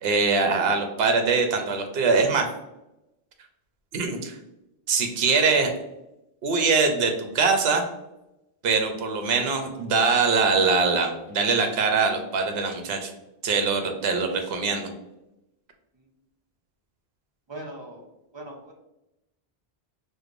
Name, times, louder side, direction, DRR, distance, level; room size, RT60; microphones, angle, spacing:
voice 1, 0.0-2.5 3.9-4.4 4.9-5.7 6.4-7.8 8.6-13.1 13.4-14.9, right 4 dB, 70° right, 5 dB, 0.8 m, -23 dB
voice 2, 17.5-18.1 18.3-18.7, right 1 dB, 35° right, 0 dB, 0.4 m, -40 dB
4.7 x 2.1 x 2.5 m, 0.90 s
omnidirectional pair, 1.1 m